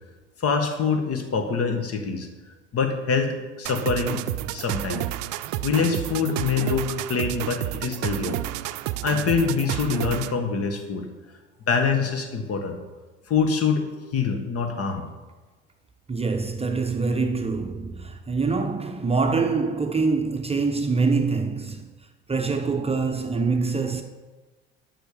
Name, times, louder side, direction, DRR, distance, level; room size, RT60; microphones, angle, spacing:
voice 1, 0.4-2.3 2.7-4.2 4.5-5.0 5.6-8.4 9.0-11.1 11.7-12.8 13.3-13.9 14.1-15.0, left 5 dB, 45° left, 1.7 m, -25 dB
sound 1, 3.7-10.4, right 15 dB, 65° right, 0.5 m, -30 dB
voice 2, 16.1-21.9 22.3-24.0, right 4 dB, 20° right, 0.8 m, -25 dB
11.5 x 6.4 x 5.1 m
hypercardioid pair, 70°, 32 cm